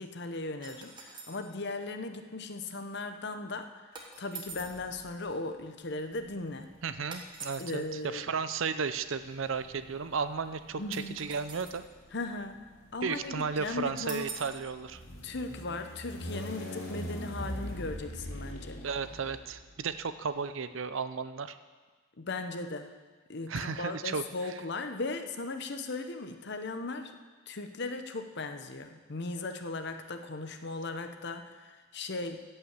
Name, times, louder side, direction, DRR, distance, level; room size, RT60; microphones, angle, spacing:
voice 1, 0.0-3.8 4.2-6.7 7.6-8.3 10.8-11.2 12.1-12.6 12.9-14.3 15.2-18.8 22.2-22.9 23.3-27.1 27.5-32.4, left 3 dB, 55° left, 8 dB, 0.9 m, -37 dB
sound 1, 0.6-1.4 4.0-4.8 7.1-7.8 10.9-11.9 14.1-14.6, right 4 dB, 20° right, 1.3 m, -44 dB
sound 2, 4.5-5.2 6.2-19.9, equal, 80° left, 2.4 m, -44 dB
voice 2, 6.8-7.8 8.1-11.8 13.0-15.0 18.8-21.6 23.5-24.6, right 5 dB, 70° right, 12 dB, 0.6 m, -34 dB
14.5 x 5.7 x 8.1 m, 1.4 s
head